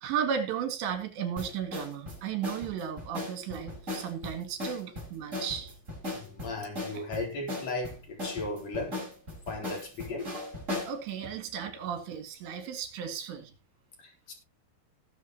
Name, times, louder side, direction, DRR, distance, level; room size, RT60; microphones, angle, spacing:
voice 1, 0.0-5.7 10.9-13.5, right 8 dB, 75° right, 4.3 m, -34 dB
sound 1, 1.4-11.0, left 2 dB, 15° right, 6.1 m, -38 dB
voice 2, 6.1-9.0 9.5-10.3 14.0-14.3, left 2 dB, 40° left, 4.3 m, -36 dB
19.0 x 7.9 x 3.0 m
omnidirectional pair, 5.1 m